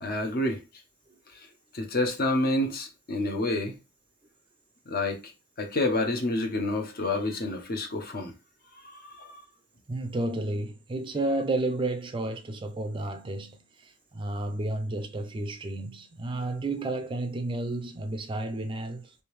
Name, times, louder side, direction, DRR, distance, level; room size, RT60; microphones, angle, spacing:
voice 1, 0.0-0.6 1.3-1.5 1.7-3.8 4.9-5.3 5.6-8.3 8.7-9.4, left 2 dB, 45° left, 0.7 m, -29 dB
voice 2, 9.9-19.1, right 2 dB, 25° right, 0.4 m, -31 dB
3.4 x 2.6 x 3.1 m
head